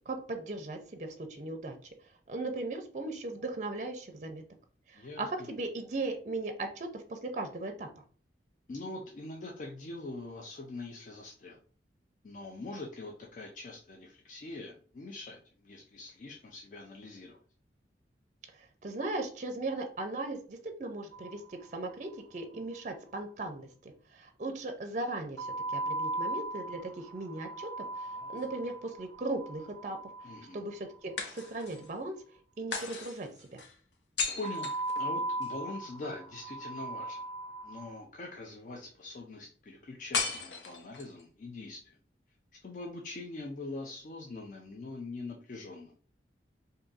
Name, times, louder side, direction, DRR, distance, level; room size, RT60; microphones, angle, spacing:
voice 1, 0.1-1.8 2.3-4.4 4.9-7.9 18.8-27.7 27.9-32.2 32.6-33.6, right 2 dB, 45° right, 5 dB, 0.5 m, -38 dB
voice 2, 4.9-5.2 8.7-11.6 12.2-17.4 30.2-30.6 34.4-34.7 35.0-37.2 37.6-42.0 42.6-45.9, left 2 dB, 45° left, 0 dB, 0.4 m, -43 dB
sound 1, 21.1-22.1 22.4-22.5 22.7-22.8 25.4-31.5 34.4-38.0, right 2 dB, 20° left, 1.2 m, -38 dB
sound 2, 28.1-29.1 31.2-31.9 32.7-35.6 40.1-41.2, left 5 dB, 80° left, 0.7 m, -37 dB
2.6 x 2.6 x 3.8 m, 0.42 s
head